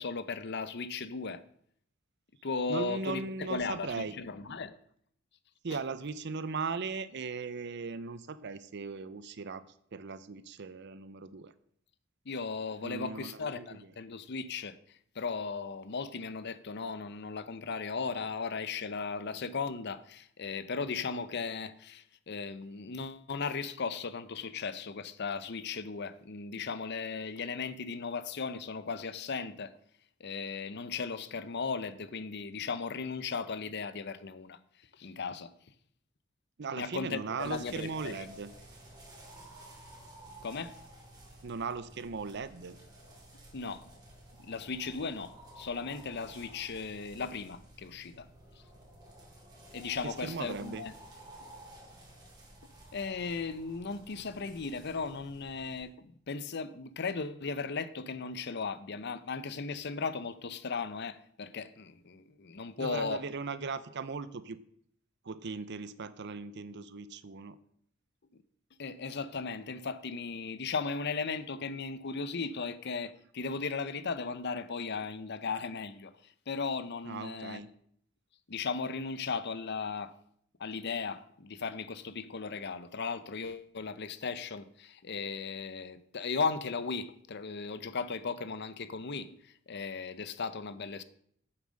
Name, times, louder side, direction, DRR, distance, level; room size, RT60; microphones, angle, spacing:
voice 1, 0.0-1.4 2.4-4.8 5.7-5.8 12.3-29.7 30.2-34.6 35.0-35.5 36.8-38.3 40.4-40.7 43.5-43.8 44.4-48.3 49.7-50.9 51.4-51.5 52.9-55.9 56.3-63.2 68.8-77.6 78.5-80.1 80.6-91.0, left 4 dB, 55° left, 0.7 m, -37 dB
voice 2, 2.7-4.1 5.6-9.6 9.9-11.5 12.8-13.8 36.6-38.5 41.4-42.8 50.0-50.8 62.8-64.6 65.2-67.6 77.0-77.7, right 4 dB, 60° right, 0.6 m, -38 dB
sound 1, 37.4-55.9, right 1 dB, 20° right, 3.5 m, -53 dB
9.1 x 7.3 x 6.3 m
head